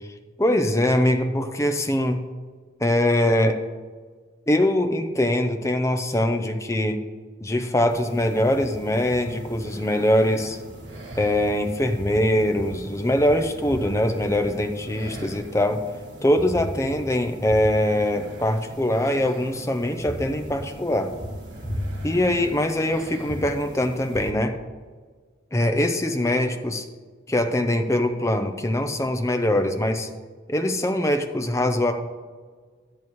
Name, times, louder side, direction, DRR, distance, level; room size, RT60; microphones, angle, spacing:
voice 1, 0.4-2.3 2.8-3.6 4.5-7.0 7.4-10.6 11.2-15.8 16.2-21.1 22.0-24.5 25.5-26.9 27.3-30.1 30.5-31.9, left 1 dB, 15° left, 6 dB, 0.6 m, -22 dB
sound 1, 7.9-24.3, equal, 60° right, 1.7 m, -37 dB
12.0 x 10.5 x 3.1 m, 1.5 s
head